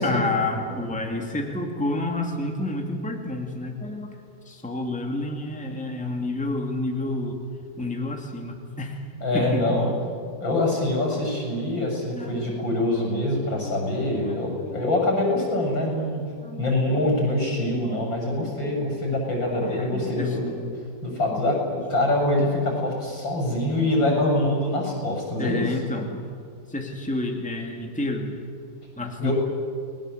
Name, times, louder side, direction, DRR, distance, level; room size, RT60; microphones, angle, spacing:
voice 1, 0.0-4.2 4.4-7.4 7.8-9.0 9.3-10.0 12.2-12.6 13.6-15.0 16.0-16.1 16.4-16.7 17.0-17.1 17.7-18.9 19.4-20.4 21.3-21.5 23.8-24.3 25.4-26.3 26.7-28.4 29.0-29.3, left 2 dB, 5° left, 1 dB, 2.5 m, -30 dB
voice 2, 9.2-9.9 10.4-16.2 16.6-20.6 21.0-25.7 29.2-29.3, left 1 dB, 80° left, 1 dB, 7.8 m, -24 dB
30.0 x 20.5 x 8.1 m, 2.2 s
omnidirectional pair, 2.1 m